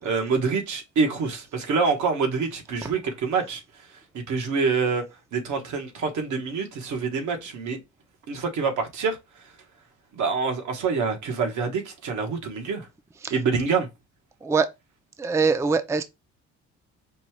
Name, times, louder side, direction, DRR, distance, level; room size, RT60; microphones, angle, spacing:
voice 1, 0.0-3.6 4.1-5.0 5.3-7.8 8.3-9.2 10.1-12.9 13.3-13.9, right 5 dB, 75° right, 1.4 m, -26 dB
voice 2, 15.2-16.0, right 4 dB, 10° right, 0.4 m, -23 dB
5.3 x 2.3 x 3.1 m
cardioid pair, 90°, 30 cm